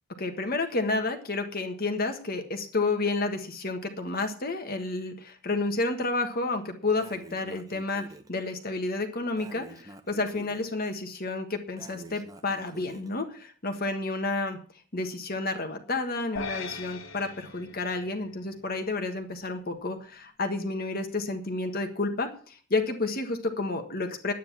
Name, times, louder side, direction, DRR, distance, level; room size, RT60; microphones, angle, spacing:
voice 1, 0.2-8.0 8.3-14.6 14.9-24.3, left 3 dB, 45° left, 6 dB, 1.5 m, -30 dB
Breathing, 7.0-8.3 9.4-10.7 11.8-13.1, right 1 dB, 15° right, 1.0 m, -47 dB
sound 1, 16.4-18.8, left 5 dB, 70° left, 1.7 m, -40 dB
10.5 x 9.2 x 7.3 m, 0.43 s
head